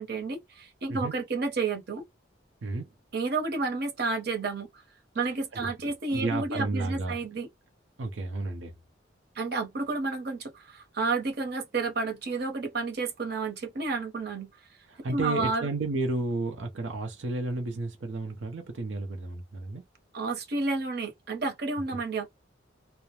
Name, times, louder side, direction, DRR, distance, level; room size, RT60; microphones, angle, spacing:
voice 1, 0.0-2.0 3.1-4.7 5.1-7.5 9.3-14.5 15.1-15.7 20.1-22.3, right 3 dB, 55° right, 0.9 m, -31 dB
voice 2, 6.1-7.2 8.0-8.7 14.9-19.8, right 2 dB, 90° right, 0.6 m, -32 dB
2.4 x 2.1 x 2.9 m
head